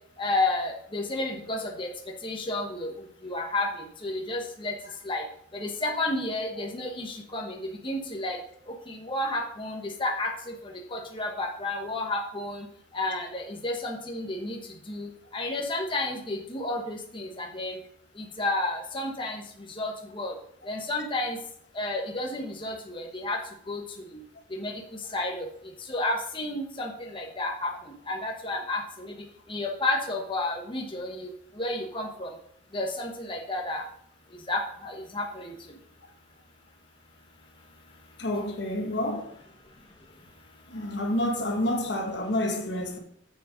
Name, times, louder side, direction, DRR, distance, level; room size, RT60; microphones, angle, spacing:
voice 1, 0.2-1.9 2.2-2.9 3.2-3.7 4.0-4.7 5.0-5.2 5.5-7.6 7.8-8.4 8.9-10.3 10.9-12.6 12.9-14.6 14.9-17.8 18.4-19.4 19.8-20.3 20.7-21.4 21.8-23.4 23.7-23.8 24.6-24.7 25.1-25.5 25.9-27.7 28.1-29.1 29.5-31.3 31.6-32.3 32.7-33.8 34.5-35.5, left 2 dB, 25° left, 1.2 m, -31 dB
voice 2, 38.2-39.3 40.7-43.0, left 1 dB, 65° left, 1.5 m, -29 dB
7.5 x 6.7 x 5.1 m
head